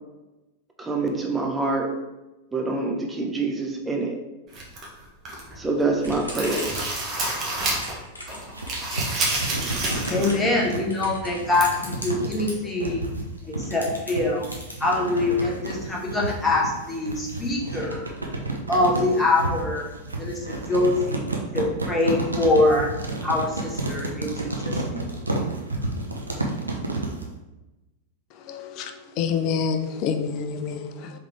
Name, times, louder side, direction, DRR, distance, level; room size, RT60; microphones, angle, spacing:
voice 1, 0.8-2.0 2.5-4.1 5.6-6.7, right 3 dB, 15° right, 1 dB, 0.7 m, -25 dB
sound 1, 4.5-5.6 5.9-8.0 8.3-10.4 10.7-10.8 11.6-11.7, right 2 dB, 30° right, 1.0 m, -29 dB
Typing / Telephone, 6.0-12.5 13.4-13.5 13.7-14.7, left 1 dB, 80° left, 0.9 m, -39 dB
sound 2, 8.2-27.3, right 2 dB, 80° right, 0.6 m, -31 dB
voice 2, 10.1-13.1 13.5-14.5 14.8-18.0 18.7-19.9 20.2-22.9 23.2-25.2, left 2 dB, 15° left, -3 dB, 1.0 m, -24 dB
voice 3, 28.5-31.1, left 6 dB, 40° left, 7 dB, 0.4 m, -27 dB
3.7 x 3.2 x 3.4 m, 1.0 s
figure-of-eight pair, 90°, 0 cm